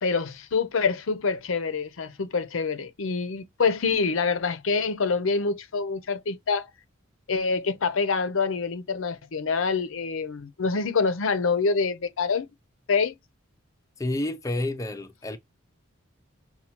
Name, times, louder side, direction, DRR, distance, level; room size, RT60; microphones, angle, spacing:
voice 1, 0.0-6.7 7.3-12.5 12.9-13.1, left 4 dB, 70° left, 0.6 m, -26 dB
voice 2, 14.0-15.4, left 1 dB, 15° left, 0.4 m, -29 dB
5.6 x 2.3 x 2.8 m
head